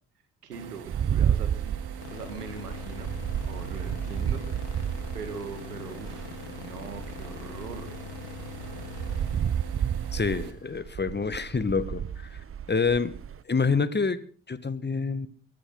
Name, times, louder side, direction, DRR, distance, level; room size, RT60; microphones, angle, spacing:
voice 1, 0.4-1.8 2.1-3.1 3.4-8.0, right 6 dB, 90° right, 9 dB, 1.9 m, -42 dB
sound 1, 0.5-10.5, right 9 dB, 60° right, 2.2 m, -45 dB
sound 2, 0.9-6.4 6.9-13.4, right 9 dB, 30° right, 0.7 m, -31 dB
sound 3, 2.0-11.2, left 6 dB, 75° left, 3.7 m, -43 dB
voice 2, 10.1-12.4 12.7-13.1 13.5-14.2 14.5-15.3, left 4 dB, 20° left, 14 dB, 1.7 m, -27 dB
23.0 x 13.5 x 4.0 m, 0.42 s
hypercardioid pair, 45°, 45 cm